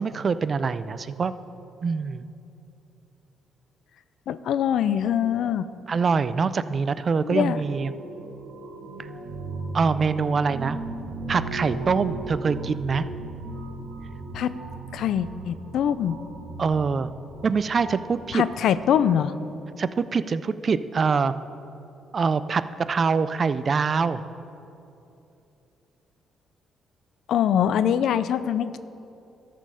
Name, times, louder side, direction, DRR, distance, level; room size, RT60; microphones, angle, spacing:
voice 1, 0.0-1.3 1.8-2.2 5.9-7.9 9.0-9.1 9.7-10.8 11.3-13.0 16.6-17.1 17.4-18.4 19.8-21.3 22.1-24.2, right 5 dB, 40° right, 14 dB, 0.3 m, -24 dB
voice 2, 4.3-5.7 7.2-7.6 14.3-14.5 14.9-16.1 18.3-19.3 27.3-28.8, left 9 dB, 75° left, 14 dB, 0.3 m, -23 dB
sound 1, 7.4-18.8, right 2 dB, 90° right, 1.1 m, -37 dB
13.0 x 5.2 x 5.6 m, 2.8 s
cardioid pair, 90°, 0 cm